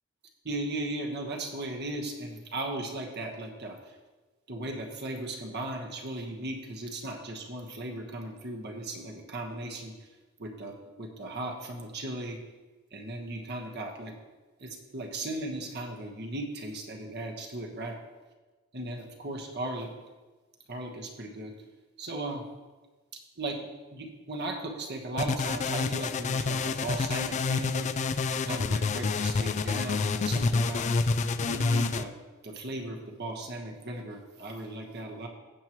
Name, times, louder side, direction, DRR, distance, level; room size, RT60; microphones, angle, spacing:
voice 1, 0.4-3.8 4.5-9.9 10.4-12.4 12.9-14.1 14.6-18.0 18.7-19.9 20.7-21.5 22.0-22.4 23.4-27.9 28.3-31.1 31.4-32.1 32.4-35.3, right 1 dB, 50° right, 1 dB, 1.3 m, -37 dB
sound 1, 25.2-32.0, left 4 dB, 35° left, 0.3 m, -28 dB
15.5 x 7.3 x 3.1 m, 1.2 s
head